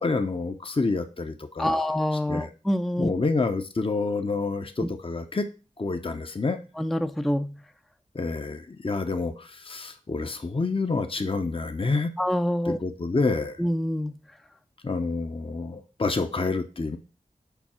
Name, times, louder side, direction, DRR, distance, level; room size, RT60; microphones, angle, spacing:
voice 1, 0.0-1.9 2.1-2.5 3.0-5.5 5.8-6.6 8.1-12.1 12.6-13.6 14.8-17.0, left 3 dB, 40° left, 7 dB, 0.8 m, -28 dB
voice 2, 1.6-3.1 6.8-7.5 12.2-12.8 13.6-14.1, left 1 dB, ahead, 9 dB, 0.5 m, -26 dB
7.0 x 5.2 x 4.4 m, 0.33 s
wide cardioid pair, 55°, 14 cm